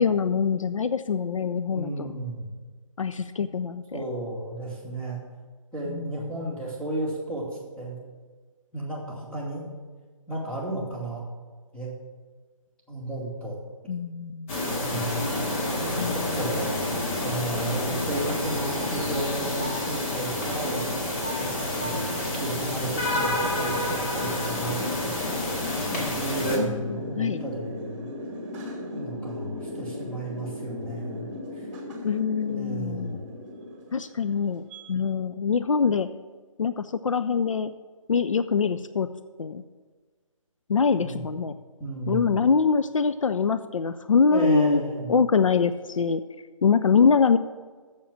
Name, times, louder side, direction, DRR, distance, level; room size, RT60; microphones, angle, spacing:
voice 1, 0.0-2.1 3.0-4.0 5.9-6.1 13.9-14.5 16.0-16.1 26.6-27.4 32.0-33.2 33.9-36.1 36.6-37.7 38.1-39.1 39.4-39.6 40.7-41.6 42.1-44.8 45.1-46.2 46.6-47.4, left 5 dB, 70° left, 11 dB, 0.5 m, -24 dB
voice 2, 1.7-2.5 3.9-5.2 5.7-7.4 7.8-8.0 8.7-9.7 10.3-11.2 11.7-11.9 12.9-13.6 14.8-15.2 15.8-16.7 17.2-21.0 21.4-21.5 21.8-25.3 25.9-28.1 28.9-31.3 31.6-31.7 32.5-33.2 41.0-41.2 41.8-42.4 44.3-45.1, right 1 dB, 5° left, -9 dB, 2.6 m, -33 dB
sound 1, 14.5-26.6, left 1 dB, 25° left, 1.8 m, -28 dB
sound 2, 21.5-34.8, left 1 dB, 30° right, 2.5 m, -39 dB
7.4 x 7.3 x 7.3 m, 1.4 s
figure-of-eight pair, 145°, 17 cm